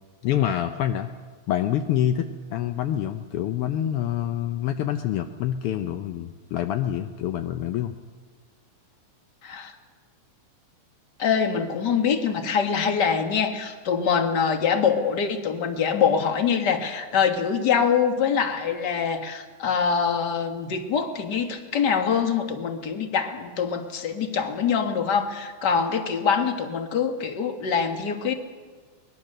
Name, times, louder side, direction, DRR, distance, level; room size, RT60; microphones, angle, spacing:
voice 1, 0.2-1.1 1.5-7.9, left 11 dB, 75° left, 7 dB, 1.4 m, -26 dB
voice 2, 9.4-9.7 11.2-28.3, left 6 dB, 45° left, 6 dB, 1.7 m, -24 dB
23.5 x 20.5 x 6.7 m, 1.5 s
omnidirectional pair, 3.4 m